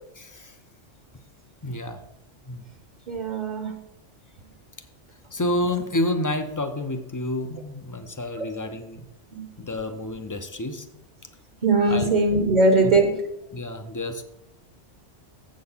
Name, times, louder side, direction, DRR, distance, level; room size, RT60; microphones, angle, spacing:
voice 1, 0.2-0.5 1.6-2.0 2.5-2.6 5.3-9.0 9.6-10.9 11.9-12.1 12.7-12.9 13.5-14.2, left 1 dB, 25° left, 7 dB, 0.4 m, -29 dB
voice 2, 3.1-3.7 8.4-8.5 9.3-9.4 11.6-13.2, right 2 dB, 45° right, 4 dB, 0.9 m, -20 dB
7.7 x 6.4 x 5.5 m, 0.87 s
omnidirectional pair, 1.2 m